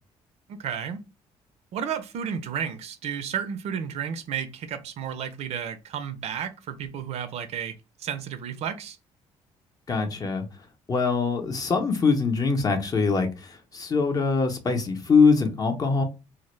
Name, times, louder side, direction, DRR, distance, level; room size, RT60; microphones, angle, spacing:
voice 1, 0.5-1.0 1.7-7.7 8.0-9.0, right 8 dB, 65° right, 0.4 m, -32 dB
voice 2, 9.9-10.5 10.9-16.0, left 4 dB, 30° left, 0.6 m, -23 dB
2.0 x 2.0 x 3.0 m
cardioid pair, 95°, 12 cm